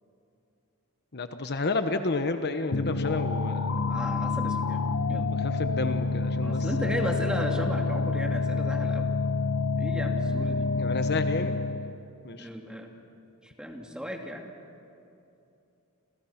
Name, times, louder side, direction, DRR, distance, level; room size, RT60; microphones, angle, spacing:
voice 1, 1.1-3.9 5.4-7.0 10.8-11.6 12.2-12.5, left 3 dB, 50° left, 8 dB, 1.1 m, -31 dB
sound 1, 2.7-12.0, left 3 dB, 70° left, 0.9 m, -28 dB
voice 2, 3.8-5.3 6.4-9.1 9.8-10.7 12.3-12.9 13.4-14.4, equal, 5° right, 2 dB, 2.5 m, -35 dB
30.0 x 28.5 x 5.9 m, 2.7 s
head